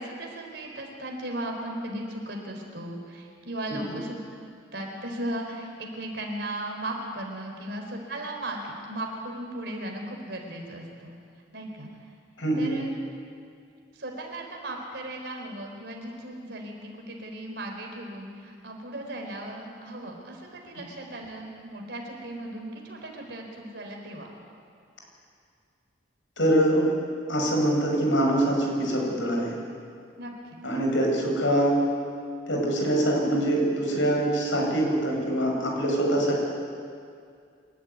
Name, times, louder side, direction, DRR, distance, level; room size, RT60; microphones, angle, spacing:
voice 1, 0.0-4.2 4.7-11.1 11.5-11.9 12.6-12.9 13.9-24.3 30.2-30.3, right 1 dB, 60° right, 1 dB, 4.2 m, -36 dB
voice 2, 12.4-12.7 26.4-26.8 27.3-29.6 30.6-31.8 32.5-36.4, right 1 dB, 90° left, 0 dB, 6.1 m, -24 dB
27.5 x 12.0 x 9.4 m, 2.3 s
head